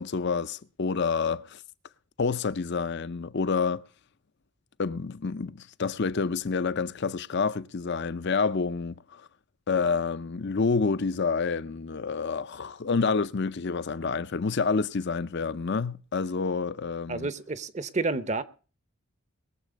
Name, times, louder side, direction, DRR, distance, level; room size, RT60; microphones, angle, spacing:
voice 1, 0.0-1.6 2.2-3.8 4.8-9.3 9.7-17.3, left 4 dB, 50° left, 0.5 m, -28 dB
voice 2, 17.1-18.4, right 3 dB, 30° right, 0.7 m, -30 dB
21.5 x 7.5 x 5.1 m
head